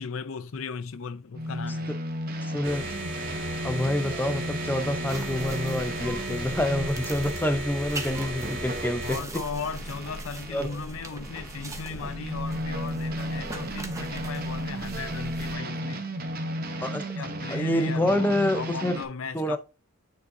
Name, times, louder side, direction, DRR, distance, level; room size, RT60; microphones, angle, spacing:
voice 1, 0.0-1.9 9.0-16.0 17.1-19.6, left 5 dB, 75° left, 0.5 m, -37 dB
sound 1, 1.3-10.8 11.2-19.1, equal, 45° right, 1.0 m, -34 dB
voice 2, 2.4-2.8 3.6-9.2 10.5-10.7 16.8-17.0 17.5-18.9 19.3-19.6, left 1 dB, 10° left, 0.6 m, -27 dB
sound 2, 2.6-9.2, right 1 dB, 65° right, 2.1 m, -35 dB
sound 3, 5.1-15.6, right 1 dB, 15° right, 0.9 m, -39 dB
9.5 x 3.9 x 2.7 m
head